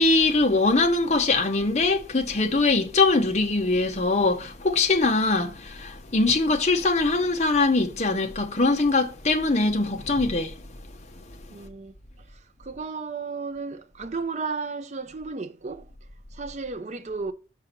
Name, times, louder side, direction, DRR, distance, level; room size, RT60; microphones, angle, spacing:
voice 1, 0.0-10.6, left 3 dB, 40° left, 0.8 m, -22 dB
voice 2, 11.5-11.9 12.3-15.8 16.3-17.3, right 4 dB, 40° right, 0.5 m, -34 dB
5.8 x 5.0 x 4.3 m
head